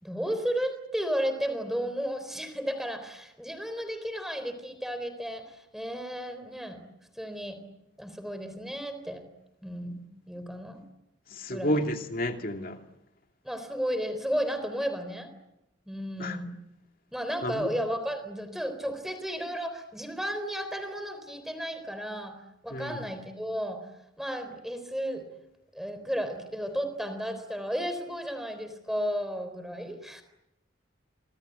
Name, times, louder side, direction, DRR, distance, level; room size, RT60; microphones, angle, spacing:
voice 1, 0.0-6.8 7.2-7.6 8.0-9.2 9.6-10.0 10.3-10.8 11.5-11.8 13.4-15.3 15.9-16.5 17.1-22.4 22.6-23.8 24.2-25.3 25.7-30.2, equal, ahead, 3.8 m, -33 dB
voice 2, 11.3-12.8 16.2-16.4 17.4-17.7 22.7-23.0, equal, 45° left, 2.5 m, -30 dB
28.0 x 25.5 x 8.1 m
head